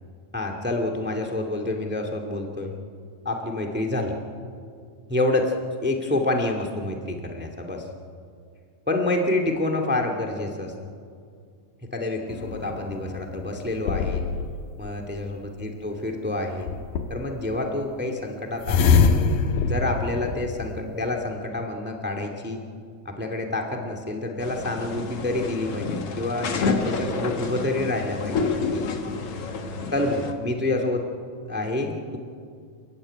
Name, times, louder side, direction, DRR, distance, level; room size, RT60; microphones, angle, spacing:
voice 1, 0.3-2.7 3.2-4.2 5.1-5.5 5.8-7.8 8.9-10.7 11.9-14.2 14.8-16.7 17.1-19.0 19.6-22.6 23.0-29.1 29.9-31.1 31.4-32.2, left 2 dB, 5° right, 3 dB, 1.3 m, -28 dB
sound 1, 12.3-14.7 16.7-17.3 18.6-21.1, left 5 dB, 70° left, 2.7 m, -24 dB
sound 2, 24.4-30.3, left 4 dB, 50° left, 2.1 m, -29 dB
28.0 x 15.0 x 10.0 m, 2.2 s
omnidirectional pair, 4.2 m